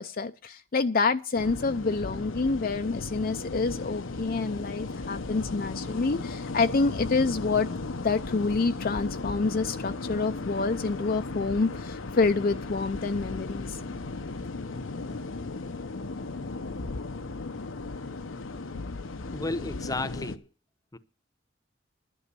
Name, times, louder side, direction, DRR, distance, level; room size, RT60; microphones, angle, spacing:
voice 1, 0.0-7.7 8.0-13.8, left 4 dB, 45° left, 0.5 m, -27 dB
sound 1, 1.4-20.4, left 3 dB, 85° left, 0.9 m, -36 dB
voice 2, 19.3-20.5 20.9-21.0, left 2 dB, 20° left, 0.8 m, -33 dB
11.5 x 6.3 x 8.3 m
head